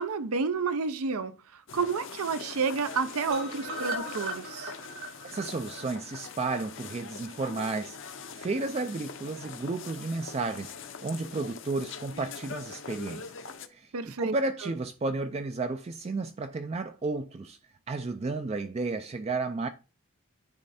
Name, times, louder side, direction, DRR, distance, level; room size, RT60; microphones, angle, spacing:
voice 1, 0.0-1.3 1.7-4.7 13.9-14.3, right 5 dB, 85° right, 0.6 m, -30 dB
sound 1, 1.7-13.7, left 5 dB, 55° left, 0.7 m, -43 dB
sound 2, 3.3-7.3 7.6-7.7 8.0-8.1 8.4-8.5, right 2 dB, 70° right, 2.2 m, -39 dB
voice 2, 5.3-8.0 8.3-10.7 11.0-13.3 13.7-17.6 17.9-19.7, right 3 dB, 30° right, 0.3 m, -32 dB
9.7 x 3.3 x 4.2 m
head